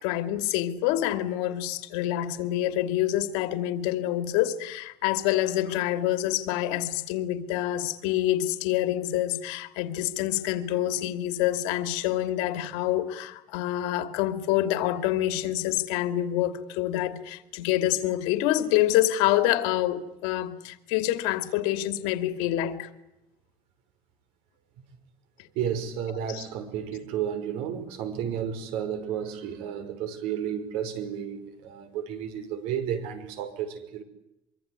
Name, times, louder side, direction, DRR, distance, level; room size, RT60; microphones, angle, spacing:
voice 1, 0.0-22.9 26.3-26.4, left 13 dB, 90° left, 2.6 m, -27 dB
voice 2, 25.6-34.0, right 9 dB, 75° right, 5.5 m, -32 dB
25.0 x 24.5 x 9.6 m
cardioid pair, 155°, 10 cm